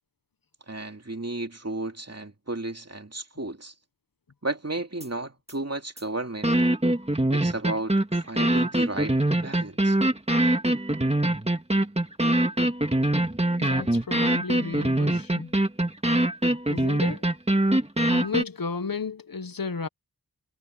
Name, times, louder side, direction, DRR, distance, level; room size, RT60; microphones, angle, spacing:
voice 1, 0.7-3.7 4.4-6.5 7.3-10.0, right 2 dB, 40° right, 2.7 m, -33 dB
sound 1, 5.0-5.1 5.5-5.6 6.0-6.1 6.4-18.4, right 1 dB, 15° right, 2.0 m, -23 dB
voice 2, 13.6-15.5 16.7-17.2 18.1-19.9, left 4 dB, 60° left, 1.0 m, -33 dB
wide cardioid pair, 60°, 38 cm